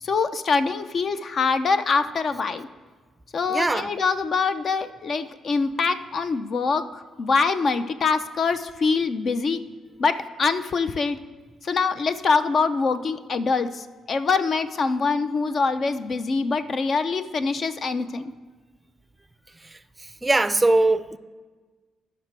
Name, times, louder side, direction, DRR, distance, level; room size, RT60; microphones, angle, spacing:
voice 1, 0.0-2.7 3.3-9.6 10.0-11.2 11.6-18.3, left 4 dB, 50° left, 0.4 m, -24 dB
voice 2, 3.5-3.9 20.2-21.2, right 2 dB, 15° right, 0.4 m, -20 dB
12.5 x 5.9 x 4.5 m
cardioid pair, 90°, 0 cm